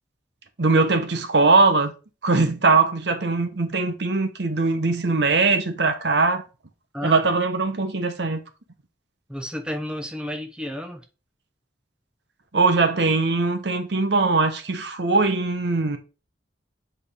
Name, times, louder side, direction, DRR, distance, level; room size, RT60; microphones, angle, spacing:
voice 1, 0.6-1.9 2.2-6.4 7.0-8.4 12.5-16.0, right 3 dB, 65° right, 0.9 m, -21 dB
voice 2, 9.3-11.0, equal, 5° right, 0.7 m, -31 dB
7.7 x 4.3 x 3.3 m
head